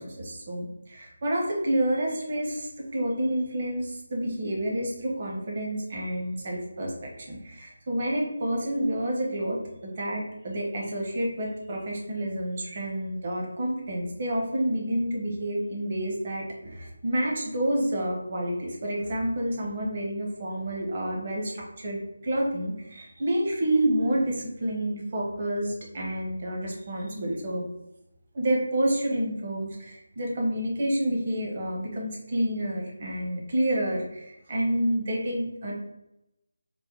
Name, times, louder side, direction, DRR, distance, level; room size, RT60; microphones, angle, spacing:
voice 1, 0.0-27.7 28.3-35.7, right 1 dB, 40° right, -2 dB, 1.0 m, -29 dB
3.5 x 2.2 x 3.6 m, 0.88 s
figure-of-eight pair, 165°, 0 cm